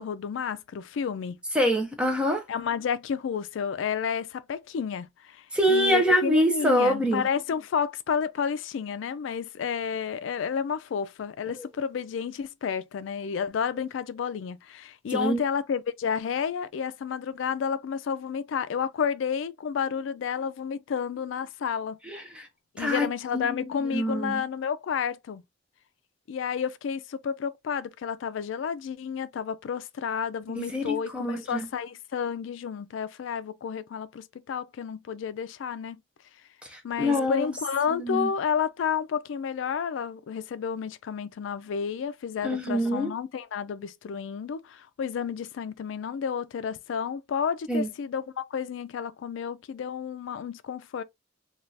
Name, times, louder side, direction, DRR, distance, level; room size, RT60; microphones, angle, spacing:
voice 1, 0.0-1.4 2.5-22.0 22.7-25.4 26.3-36.0 36.8-51.0, left 7 dB, 75° left, 0.3 m, -31 dB
voice 2, 1.5-2.4 5.5-7.2 15.1-15.4 22.1-22.5 22.8-23.1 23.3-23.6 23.9-24.4 30.6-31.7 36.7-37.5 37.9-38.3 42.4-43.1 47.7-47.9, equal, 5° right, 0.5 m, -25 dB
3.2 x 2.3 x 2.6 m
head